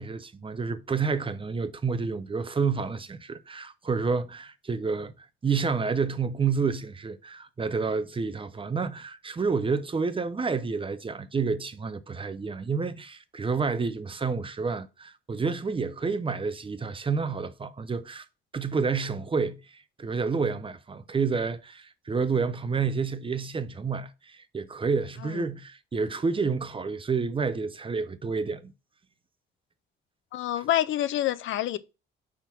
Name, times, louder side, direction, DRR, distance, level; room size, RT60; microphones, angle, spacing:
voice 1, 0.0-5.1 5.4-18.2 18.5-28.7, right 5 dB, 25° right, 0.7 m, -29 dB
voice 2, 30.3-31.8, left 12 dB, 75° left, 0.6 m, -27 dB
5.8 x 3.7 x 5.9 m
cardioid pair, 90°, 20 cm